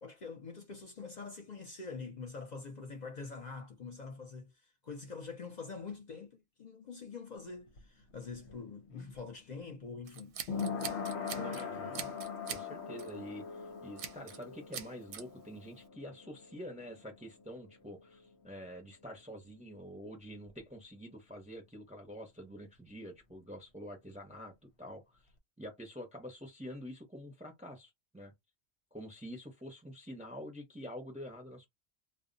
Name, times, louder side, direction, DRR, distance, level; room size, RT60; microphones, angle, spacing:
voice 1, 0.0-10.4 11.3-12.2, left 4 dB, 50° left, 0.6 m, -45 dB
sound 1, 7.4-18.9 19.2-19.3, left 5 dB, 90° left, 0.9 m, -42 dB
Scissors, 10.1-11.6 11.9-12.7 13.0-13.2 14.0-14.4 14.7-15.2, right 8 dB, 60° right, 0.6 m, -43 dB
voice 2, 11.3-12.0 12.5-25.2 25.6-28.3 28.9-31.7, equal, 10° right, 0.4 m, -47 dB
2.0 x 2.0 x 3.7 m
omnidirectional pair, 1.1 m